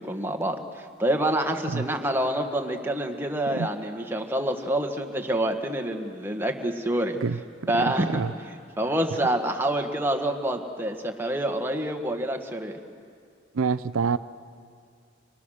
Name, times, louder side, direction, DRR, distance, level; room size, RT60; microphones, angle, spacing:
voice 1, 0.0-7.2 7.7-8.2 8.8-12.8, right 1 dB, 10° right, 3 dB, 1.6 m, -27 dB
voice 2, 7.7-8.3 13.5-14.2, right 5 dB, 85° right, 14 dB, 0.5 m, -27 dB
28.5 x 25.0 x 6.5 m, 2.2 s
head